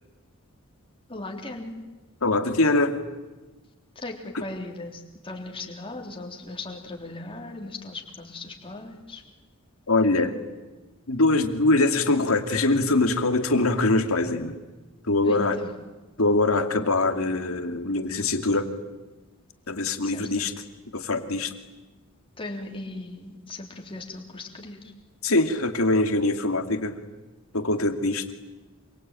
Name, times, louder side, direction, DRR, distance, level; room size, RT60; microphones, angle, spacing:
voice 1, 1.1-1.7 4.0-9.2 15.2-15.7 20.0-20.3 22.4-24.9, left 2 dB, 25° left, 1 dB, 3.7 m, -38 dB
voice 2, 2.2-3.0 9.9-10.3 11.1-14.6 15.0-15.6 16.2-18.7 19.7-20.5 20.9-21.5 25.2-27.0 27.5-28.2, left 2 dB, 85° left, 6 dB, 2.6 m, -23 dB
27.0 x 24.0 x 9.1 m, 1.2 s
head